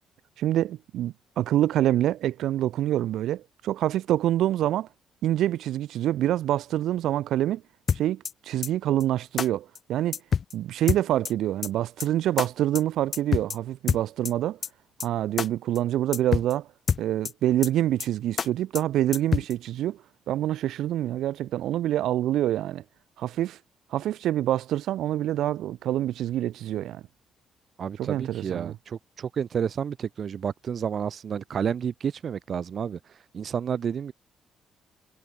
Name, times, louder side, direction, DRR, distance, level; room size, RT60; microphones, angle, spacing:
voice 1, 0.4-4.9 5.2-7.6 7.9-10.2 10.5-14.6 15.0-16.7 17.0-20.0 20.3-22.8 23.2-23.6 23.9-27.0 28.0-28.8, right 12 dB, 80° right, 4.7 m, -26 dB
sound 1, 7.9-8.3 8.6-8.7 9.0-9.1 9.4-9.5 9.7-9.8 10.1-10.5 10.9-11.3 11.6-11.7 12.0-12.1 12.4-12.5 12.7-12.8 13.1-13.6 13.9-14.3 14.6-14.7 15.0-15.1 15.4-15.5 15.7-15.8 16.1-16.5 16.9-17.3 17.6-17.7 18.0-18.1 18.4-18.5 18.7-18.8 19.1-19.5, left 7 dB, 50° left, 2.9 m, -26 dB
voice 2, 27.8-33.0 33.3-34.1, right 7 dB, 55° right, 6.9 m, -30 dB
cardioid pair, 90°, 0 cm